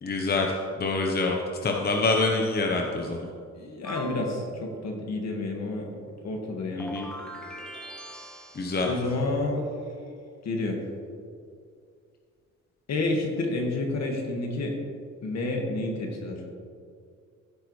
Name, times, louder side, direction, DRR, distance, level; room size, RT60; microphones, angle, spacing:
voice 1, 0.0-0.5 0.8-3.3 6.7-7.1 8.5-8.9, left 3 dB, 30° left, 1 dB, 1.0 m, -26 dB
voice 2, 3.5-5.9 6.2-6.9 8.8-9.7 10.4-10.8 12.9-14.7 15.2-16.4, left 2 dB, 60° left, 1 dB, 1.8 m, -29 dB
sound 1, 3.8-4.3 6.8-9.0, equal, 5° left, 1.6 m, -41 dB
14.5 x 6.7 x 3.2 m, 2.2 s
cardioid pair, 90°, 30 cm